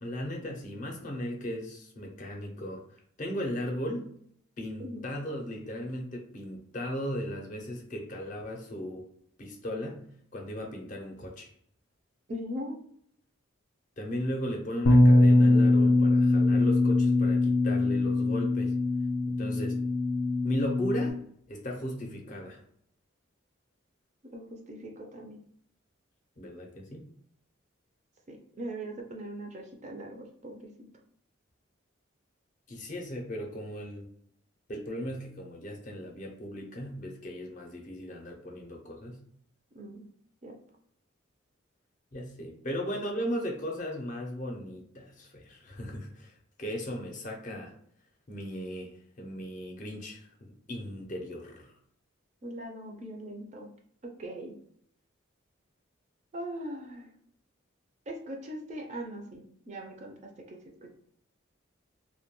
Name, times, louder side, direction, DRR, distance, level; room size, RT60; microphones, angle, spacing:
voice 1, 0.0-2.8 3.2-4.1 4.6-9.0 9.4-10.1 10.3-11.5 14.0-18.7 19.3-19.8 20.4-21.2 21.5-22.6 26.4-27.0 32.7-34.0 34.7-39.2 42.1-47.7 48.3-51.7, equal, 40° left, 1 dB, 0.5 m, -37 dB
voice 2, 12.3-12.8 24.2-25.4 28.3-30.6 39.7-40.1 40.4-40.6 52.4-53.7 54.0-54.5 56.3-57.1 58.1-60.6, right 1 dB, 35° right, 1 dB, 0.4 m, -40 dB
Bass guitar, 14.9-21.1, left 2 dB, 85° left, 0.5 m, -22 dB
2.2 x 2.1 x 2.9 m, 0.66 s
head